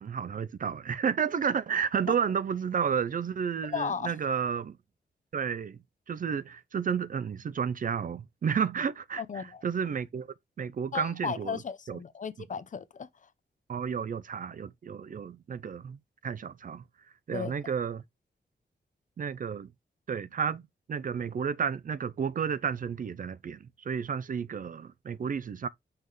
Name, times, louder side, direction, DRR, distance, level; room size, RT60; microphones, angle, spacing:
voice 1, 0.0-4.8 5.3-5.8 6.1-10.3 10.6-11.6 11.9-12.0 13.7-16.0 16.2-16.8 17.3-18.0 19.2-19.7 20.1-20.6 20.9-25.7, right 7 dB, 50° right, 0.4 m, -31 dB
voice 2, 3.6-4.1 9.2-9.6 10.9-13.1 17.3-17.5, left 6 dB, 45° left, 0.5 m, -35 dB
5.7 x 5.3 x 3.1 m
wide cardioid pair, 170°, 18 cm